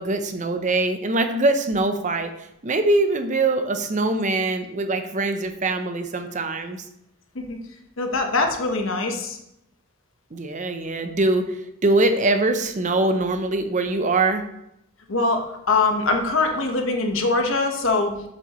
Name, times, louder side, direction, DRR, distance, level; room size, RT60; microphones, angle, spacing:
voice 1, 0.0-2.3 2.6-6.8 10.3-11.5 11.8-14.4, right 2 dB, 35° right, 8 dB, 0.6 m, -22 dB
voice 2, 8.0-9.4 15.1-18.1, left 3 dB, 65° left, 3 dB, 1.2 m, -23 dB
7.6 x 7.2 x 3.1 m, 0.82 s
head